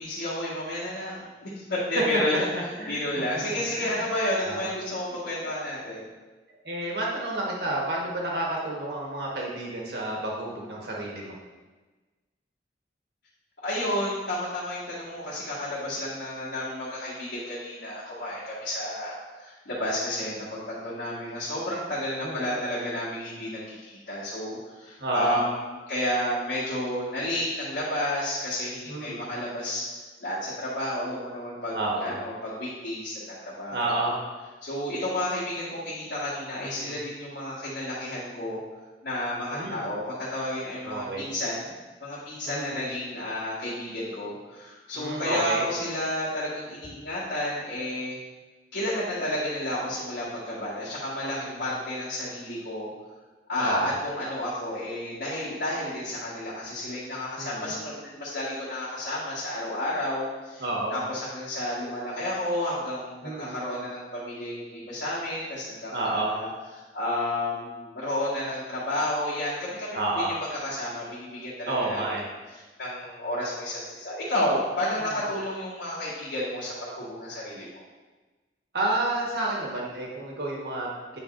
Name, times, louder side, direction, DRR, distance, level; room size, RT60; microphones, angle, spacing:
voice 1, 0.0-2.4 2.9-6.1 13.6-25.5 25.9-29.8 30.2-33.9 34.6-38.6 39.0-41.7 42.0-48.2 48.7-52.9 53.5-60.6 60.9-66.5 66.9-70.0 70.3-72.0 72.8-77.7, left 1 dB, 90° left, -12 dB, 2.0 m, -31 dB
voice 2, 2.5-3.0 3.3-4.0 4.4-4.7 6.6-11.3 22.2-22.6 25.0-25.4 28.9-29.3 31.7-32.2 33.7-34.2 36.6-36.9 39.5-39.8 40.8-41.3 42.4-42.8 44.9-45.6 51.3-51.6 53.6-53.9 57.4-57.8 60.6-61.0 63.2-63.6 65.9-66.4 69.9-70.3 71.7-72.3 75.0-75.2 78.7-81.2, right 2 dB, 65° right, -3 dB, 1.4 m, -30 dB
9.0 x 5.0 x 2.6 m, 1.3 s
head